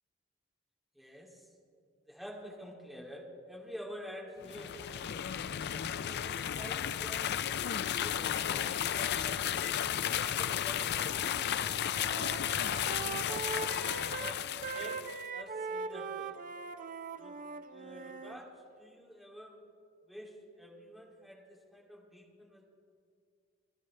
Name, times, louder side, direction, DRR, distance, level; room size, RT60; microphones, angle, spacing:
voice 1, 0.9-1.5 2.1-5.2 6.0-7.5 7.8-12.6 13.2-13.7 14.1-14.4 14.7-15.0 15.3-16.3 17.2-17.3 17.7-18.5 18.8-19.6 20.1-22.6, equal, ahead, -3 dB, 2.7 m, -49 dB
sound 1, 4.4-15.2, left 9 dB, 50° left, 0.4 m, -33 dB
Wind instrument woodwind instrument, 11.1-11.6 11.9-18.4, right 5 dB, 40° right, 0.5 m, -41 dB
29.5 x 12.0 x 3.3 m, 2.3 s
head